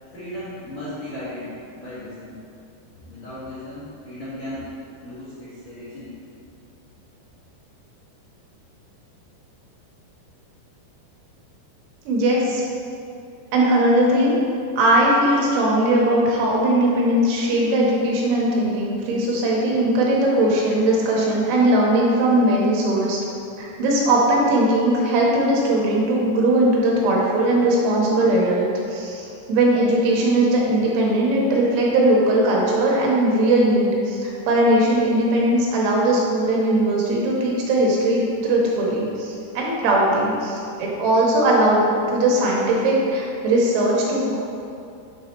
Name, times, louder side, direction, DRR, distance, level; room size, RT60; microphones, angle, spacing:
voice 1, 0.1-2.3 3.1-4.7 5.0-6.1, left 1 dB, 60° left, -13 dB, 1.8 m, -36 dB
voice 2, 12.1-12.6 13.5-14.4 14.8-23.2 23.6-44.4, right 1 dB, 85° right, -3 dB, 3.4 m, -19 dB
7.5 x 4.1 x 4.4 m, 2.6 s
omnidirectional pair, 5.2 m